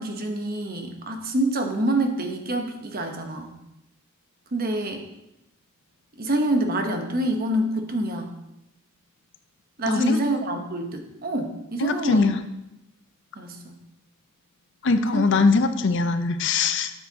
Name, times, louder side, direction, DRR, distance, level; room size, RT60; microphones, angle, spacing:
voice 1, 0.0-3.6 4.5-5.1 6.2-8.3 9.8-12.3 13.3-13.8 15.1-15.3, right 1 dB, 45° right, 5 dB, 0.9 m, -26 dB
voice 2, 9.8-10.2 11.8-12.4 14.8-16.9, left 3 dB, 55° left, 9 dB, 0.5 m, -21 dB
8.9 x 7.5 x 2.8 m, 0.88 s
head